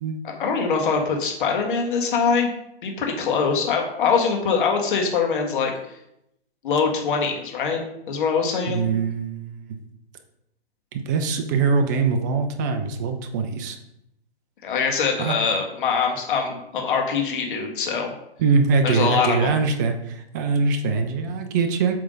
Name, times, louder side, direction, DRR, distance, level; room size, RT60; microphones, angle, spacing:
voice 1, 0.2-2.5 2.8-5.7 6.6-7.8 8.1-8.9 14.6-18.1 18.8-19.5, left 5 dB, 50° left, 2 dB, 1.7 m, -23 dB
voice 2, 8.7-9.8 10.9-13.8 15.2-15.4 18.4-21.9, right 4 dB, 20° right, 7 dB, 0.4 m, -23 dB
7.7 x 3.4 x 5.2 m, 0.80 s
hypercardioid pair, 135°, 32 cm